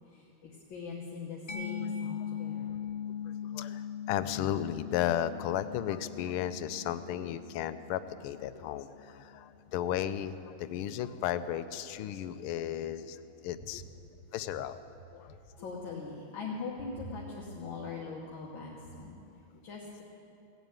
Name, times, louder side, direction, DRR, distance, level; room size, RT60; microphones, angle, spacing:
voice 1, 0.0-2.8 13.7-13.9 15.2-19.2 19.6-20.0, left 4 dB, 65° left, -3 dB, 2.0 m, -42 dB
Mallet percussion, 1.5-8.9, left 8 dB, 40° left, 0.9 m, -40 dB
voice 2, 4.1-13.8 14.3-14.8 15.1-15.3, left 11 dB, 85° left, 13 dB, 1.5 m, -34 dB
17.0 x 8.1 x 8.9 m, 2.8 s
omnidirectional pair, 2.3 m